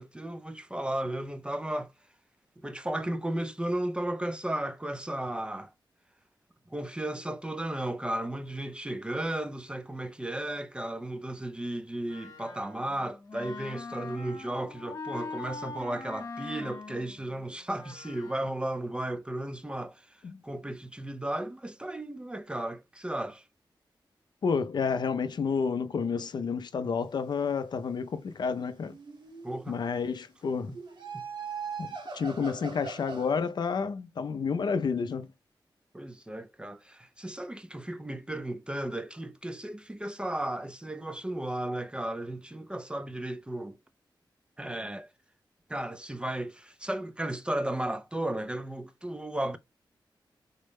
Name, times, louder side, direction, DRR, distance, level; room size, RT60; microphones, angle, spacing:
voice 1, 0.0-1.9 2.6-5.7 6.7-23.5 29.4-29.8 30.7-30.8 31.1-31.2 31.8-32.0 35.9-43.8 44.6-45.1 45.7-49.6, right 1 dB, 10° right, 0.3 m, -34 dB
Wind instrument woodwind instrument, 12.1-18.6, left 4 dB, 45° left, 0.8 m, -42 dB
voice 2, 24.4-29.0 29.7-30.7 31.8-35.3, left 5 dB, 60° left, 0.4 m, -30 dB
sound 1, 28.7-29.7 30.7-33.4, right 5 dB, 65° right, 1.1 m, -40 dB
3.9 x 2.1 x 3.2 m
wide cardioid pair, 160°, 8 cm